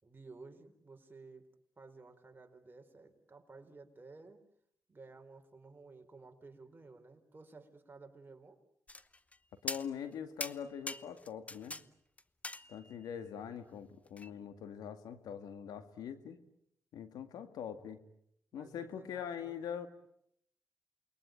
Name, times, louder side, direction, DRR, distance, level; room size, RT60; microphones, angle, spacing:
voice 1, 0.0-1.5 1.8-4.4 4.9-8.6 18.5-19.6, right 3 dB, 30° right, 5 dB, 4.5 m, -55 dB
sound 1, 8.9-9.4 9.7-10.1 10.4-11.8 12.2-13.1 14.2-14.3, left 2 dB, 20° left, 1.1 m, -42 dB
voice 2, 9.6-11.8 12.7-16.4 16.9-18.0 18.5-19.9, left 8 dB, 90° left, 9 dB, 2.3 m, -43 dB
28.5 x 21.5 x 9.3 m, 0.73 s
cardioid pair, 65°, 7 cm